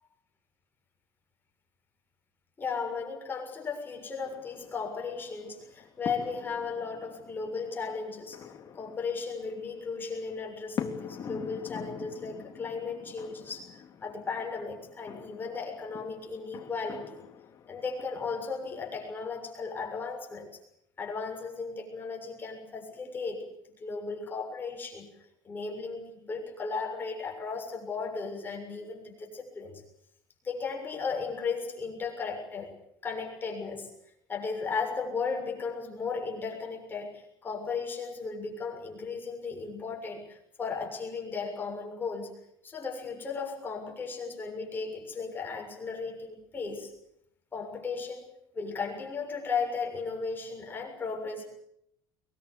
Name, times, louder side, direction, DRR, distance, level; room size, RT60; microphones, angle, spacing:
voice 1, 2.6-17.3 17.7-20.6 21.0-25.2 25.4-29.8 30.4-32.8 33.0-33.9 34.3-46.9 47.5-51.5, left 4 dB, 25° left, 1 dB, 7.0 m, -36 dB
sound 1, 4.2-19.1, left 7 dB, 40° left, 3.2 m, -45 dB
23.0 x 22.5 x 8.5 m, 0.75 s
cardioid pair, 125°, 8 cm